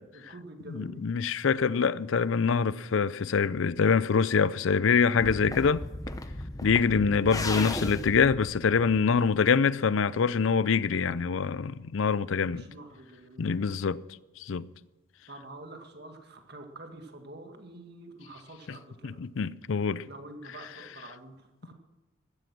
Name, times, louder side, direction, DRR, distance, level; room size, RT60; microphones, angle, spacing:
voice 1, 0.1-1.0 11.6-11.9 12.4-13.7 15.3-19.2 20.1-21.7, right 2 dB, 50° right, 1.9 m, -47 dB
voice 2, 0.7-5.8 6.6-12.6 13.4-14.0 14.4-14.6 19.0-20.0, left 5 dB, 70° left, 0.5 m, -25 dB
sound 1, 5.2-9.4, left 2 dB, 15° left, 0.8 m, -36 dB
15.5 x 13.0 x 6.1 m
head